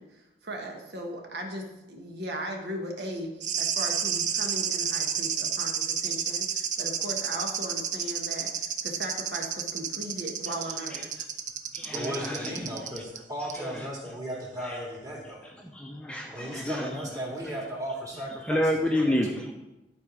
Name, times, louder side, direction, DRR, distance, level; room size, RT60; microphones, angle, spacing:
voice 1, 0.0-11.1, right 1 dB, 70° right, 2 dB, 1.3 m, -37 dB
sound 1, 3.4-13.2 13.5-13.6, right 8 dB, 45° right, 0.6 m, -31 dB
voice 2, 10.7-11.3 11.7-13.0 13.4-14.2 14.6-14.8 15.2-17.7 18.1-19.5, left 1 dB, 5° left, 1 dB, 0.6 m, -32 dB
voice 3, 11.9-15.4 16.3-18.6 18.9-19.0, equal, 20° right, -2 dB, 2.0 m, -36 dB
11.5 x 4.6 x 5.0 m, 1.0 s
head